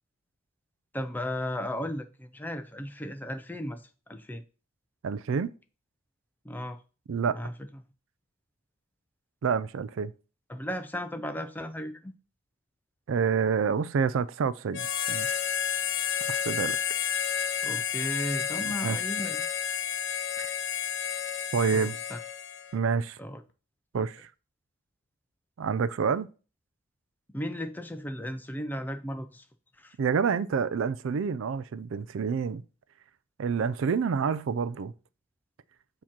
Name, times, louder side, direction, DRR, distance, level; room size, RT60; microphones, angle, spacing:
voice 1, 0.9-4.4 6.4-6.8 7.3-7.5 10.5-12.1 17.6-19.4 21.7-22.2 23.2-23.4 23.9-24.1 27.3-29.4 29.8-30.0, equal, 10° left, 0.4 m, -35 dB
voice 2, 5.0-5.5 7.1-7.4 9.4-10.1 13.1-15.4 16.3-16.8 18.6-19.0 20.4-20.5 21.5-22.0 22.7-23.2 23.9-24.3 25.6-26.3 30.0-32.6 33.4-34.9, right 6 dB, 70° right, 0.4 m, -28 dB
Harmonica, 14.7-22.8, left 8 dB, 60° left, 0.6 m, -31 dB
7.1 x 2.9 x 5.9 m
head